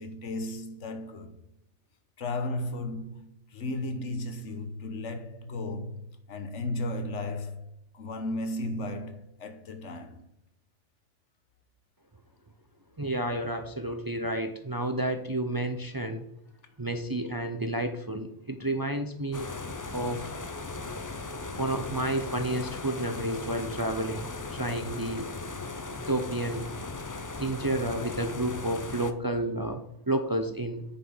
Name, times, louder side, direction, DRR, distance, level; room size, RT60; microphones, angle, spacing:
voice 1, 0.0-1.3 2.2-7.7 7.9-10.2, left 1 dB, 80° left, 1.4 m, -35 dB
voice 2, 13.0-16.3 16.8-19.5 19.9-20.3 21.6-25.3 25.9-26.6 27.4-30.8, right 1 dB, 25° right, 0.6 m, -31 dB
sound 1, 19.3-29.1, left 3 dB, 25° left, 0.4 m, -38 dB
8.9 x 5.5 x 5.6 m
omnidirectional pair, 1.2 m